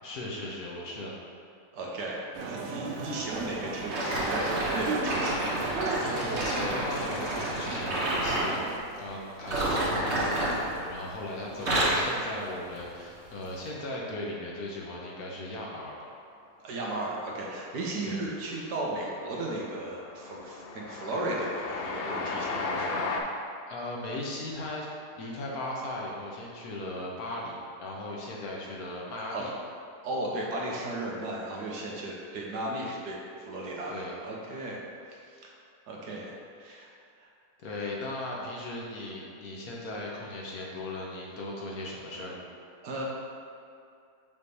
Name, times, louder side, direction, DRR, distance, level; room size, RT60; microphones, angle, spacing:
voice 1, 0.0-1.1 6.0-8.6 9.0-16.1 18.0-18.2 23.7-24.9 25.1-29.5 33.9-34.2 37.6-42.4, left 1 dB, 65° left, -3 dB, 1.4 m, -38 dB
voice 2, 1.7-2.2 2.4-5.4 16.6-23.0 29.3-29.5 30.0-34.8 35.1-35.5 35.9-36.9 37.2-37.3 42.8-43.0, right 1 dB, 85° right, -3 dB, 1.5 m, -35 dB
sound 1, 2.3-8.8, right 4 dB, 70° right, 0.7 m, -35 dB
sound 2, 3.9-8.5 9.4-11.2 11.5-12.1 12.7-12.9 13.6-13.7, right 1 dB, 45° right, 1.3 m, -29 dB
Train, 17.5-18.0 18.3-23.2, left 3 dB, 90° left, 0.5 m, -35 dB
5.6 x 3.2 x 5.3 m, 2.5 s
omnidirectional pair, 1.7 m